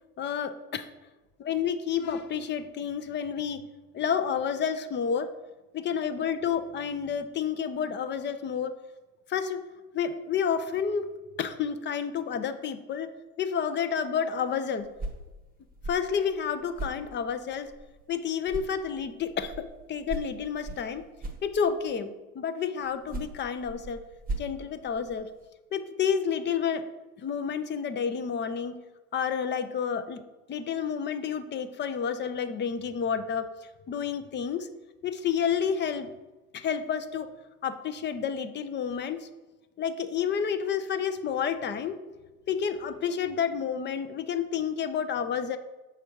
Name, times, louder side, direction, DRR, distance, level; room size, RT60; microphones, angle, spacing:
voice 1, 0.2-0.9 1.4-3.7 3.9-5.3 5.7-8.8 9.3-9.6 9.9-11.1 11.4-13.1 13.4-14.9 15.9-17.7 18.1-21.1 21.4-24.0 24.4-25.3 25.7-26.9 27.2-28.8 29.1-30.2 30.5-33.5 33.9-34.7 35.0-36.1 36.5-37.3 37.6-39.3 39.8-42.0 42.5-45.6, left 7 dB, 25° left, 10 dB, 0.5 m, -30 dB
sound 1, 14.8-18.2 18.5-22.0 22.8-25.5, right 2 dB, 20° right, 0.9 m, -40 dB
6.9 x 4.9 x 4.6 m, 1.1 s
supercardioid pair, 100°, 44 cm